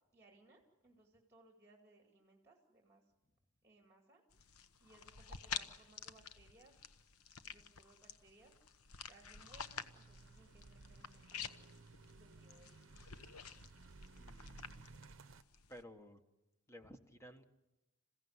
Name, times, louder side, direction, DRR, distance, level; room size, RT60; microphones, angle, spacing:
voice 1, 0.1-3.1 3.6-4.2 4.8-6.7 7.4-8.5 9.1-11.5 12.2-12.9, right 2 dB, 10° right, 2 dB, 2.4 m, -66 dB
sound 1, 4.3-15.8, left 7 dB, 80° left, 1.1 m, -50 dB
sound 2, 9.4-15.4, right 3 dB, 60° right, 0.8 m, -58 dB
voice 2, 14.1-14.9 15.7-16.2 16.7-17.4, equal, 10° left, 7 dB, 1.3 m, -56 dB
28.0 x 16.0 x 9.6 m, 1.0 s
head